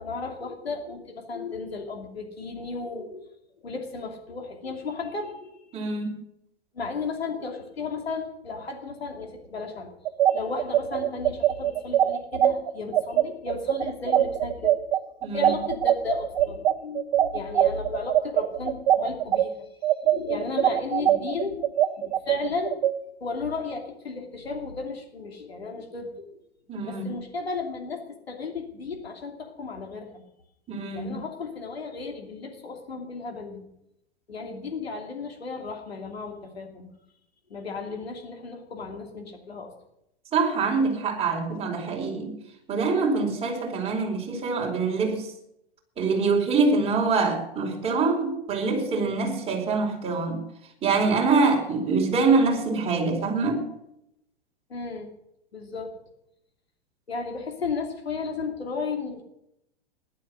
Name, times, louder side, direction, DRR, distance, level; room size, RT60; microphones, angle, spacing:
voice 1, 0.0-6.0 6.7-9.9 10.3-15.0 15.2-19.7 20.0-22.8 23.2-26.3 26.8-30.2 30.9-33.7 34.3-36.9 37.5-39.7 54.7-55.1 55.5-56.0 57.1-59.2, left 4 dB, 75° left, 2.8 m, -34 dB
voice 2, 5.7-6.2 15.2-15.6 26.7-27.1 30.7-31.1 40.3-42.3 42.7-45.3 46.0-50.4 50.8-53.7, right 4 dB, 20° right, 4.4 m, -24 dB
sound 1, 10.0-19.4 19.8-22.9, right 12 dB, 50° right, 1.2 m, -22 dB
15.5 x 11.5 x 6.3 m
figure-of-eight pair, 105°, 31 cm